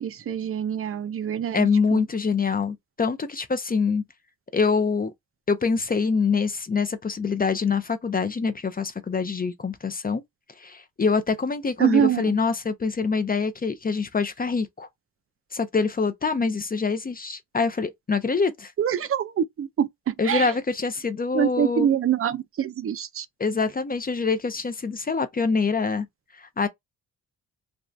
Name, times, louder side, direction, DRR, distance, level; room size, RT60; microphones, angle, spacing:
voice 1, 0.0-2.0 11.8-12.4 18.8-20.5 21.3-23.3, right 9 dB, 40° right, 0.4 m, -25 dB
voice 2, 1.5-4.0 4.5-5.1 5.5-10.2 10.6-14.9 15.5-18.7 20.2-21.9 23.4-26.1 26.3-26.7, left 4 dB, 25° left, 0.5 m, -25 dB
2.6 x 2.3 x 3.2 m
cardioid pair, 105°, 37 cm